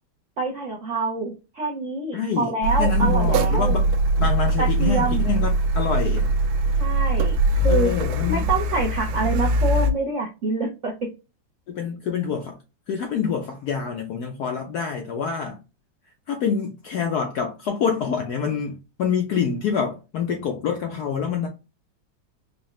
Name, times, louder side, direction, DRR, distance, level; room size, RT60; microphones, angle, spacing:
voice 1, 0.4-3.8 4.6-5.3 6.8-7.4 7.6-7.9 8.3-10.9, right 3 dB, 65° right, 0.7 m, -26 dB
voice 2, 2.1-2.5 2.8-6.3 7.7-8.5 11.7-12.6 12.9-15.6 16.3-21.5, left 6 dB, 70° left, 0.9 m, -26 dB
Car, 2.6-9.9, right 1 dB, 80° right, 1.4 m, -21 dB
4.7 x 2.2 x 3.0 m
omnidirectional pair, 2.2 m